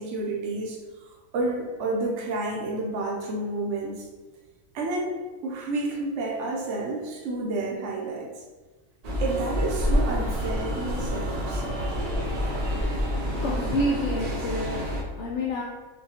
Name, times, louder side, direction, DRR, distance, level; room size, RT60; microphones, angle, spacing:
voice 1, 0.0-4.1 4.7-8.3 9.2-11.6, right 2 dB, 70° right, -2 dB, 0.9 m, -30 dB
sound 1, 9.0-15.0, equal, 50° right, 0.4 m, -28 dB
voice 2, 13.4-14.8 15.2-15.6, left 1 dB, 65° left, -3 dB, 0.8 m, -28 dB
5.2 x 2.2 x 2.8 m, 1.3 s
omnidirectional pair, 1.4 m